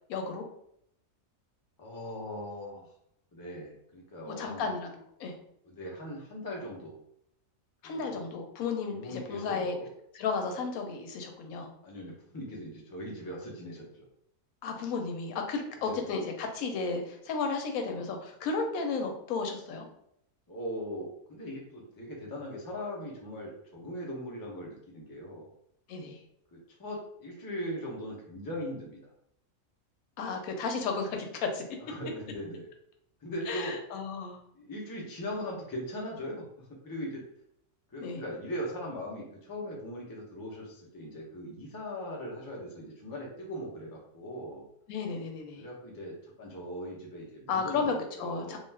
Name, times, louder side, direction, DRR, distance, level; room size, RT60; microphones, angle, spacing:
voice 1, 0.1-0.4 4.3-4.9 5.2-5.4 7.8-9.7 10.1-11.7 14.6-19.8 25.9-26.2 30.2-31.6 33.5-34.4 38.0-38.2 44.9-45.6 47.5-48.6, left 4 dB, 90° left, 4 dB, 1.0 m, -33 dB
voice 2, 1.8-2.9 3.3-4.7 5.6-6.9 7.8-8.3 8.9-9.9 11.8-14.0 15.9-16.1 20.5-25.5 26.5-29.0 31.8-32.7 33.2-33.8 34.5-37.2 37.9-44.7 45.6-48.6, equal, 25° left, -3 dB, 0.4 m, -40 dB
2.4 x 2.3 x 3.2 m, 0.73 s
omnidirectional pair, 1.4 m